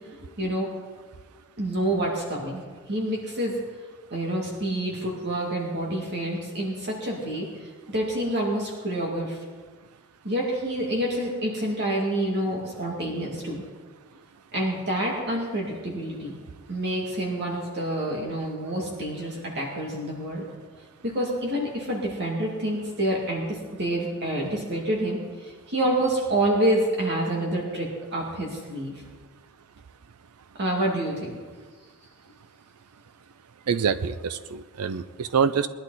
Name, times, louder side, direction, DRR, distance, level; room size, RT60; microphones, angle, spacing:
voice 1, 0.1-0.7 1.6-2.6 2.9-3.6 4.1-9.4 10.2-13.6 14.5-16.3 16.7-20.4 21.1-29.0 30.6-31.3, right 1 dB, 50° right, -2 dB, 2.3 m, -28 dB
voice 2, 33.7-35.7, right 6 dB, 80° right, 12 dB, 0.5 m, -25 dB
20.5 x 11.5 x 4.1 m, 1.4 s
head